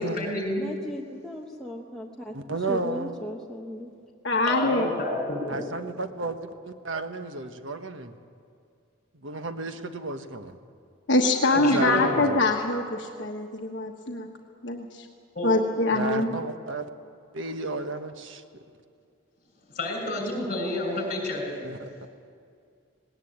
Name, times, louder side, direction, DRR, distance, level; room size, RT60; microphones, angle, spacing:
voice 1, 0.0-0.7 4.5-5.6 11.4-12.2 15.3-15.5 19.7-21.6, left 1 dB, 45° left, 1 dB, 6.8 m, -30 dB
voice 2, 0.6-3.9, left 1 dB, 5° left, -2 dB, 1.1 m, -37 dB
voice 3, 2.3-3.1 5.5-8.1 9.2-10.6 11.6-12.4 15.9-16.9 17.3-18.4 21.6-21.9, right 3 dB, 75° right, 8 dB, 1.3 m, -32 dB
voice 4, 4.2-4.9 11.1-14.3 14.6-15.0 15.4-16.3, left 2 dB, 60° left, 1 dB, 1.3 m, -24 dB
19.5 x 18.5 x 8.7 m, 2.3 s
head